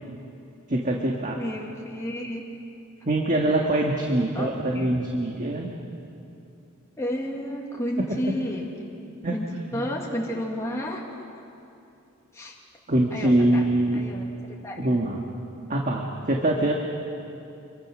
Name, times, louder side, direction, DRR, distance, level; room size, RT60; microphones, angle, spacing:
voice 1, 0.7-1.4 3.0-5.7 9.2-9.4 9.7-9.9 12.9-14.0 14.8-15.2 15.7-16.7, right 1 dB, 40° right, 0 dB, 1.7 m, -23 dB
voice 2, 1.4-2.4 4.3-4.5 4.7-5.0 7.0-8.8 9.3-11.1 12.3-12.6 13.1-13.6 13.9-15.0, equal, 15° left, -2 dB, 1.9 m, -31 dB
27.0 x 23.0 x 6.3 m, 2.7 s
head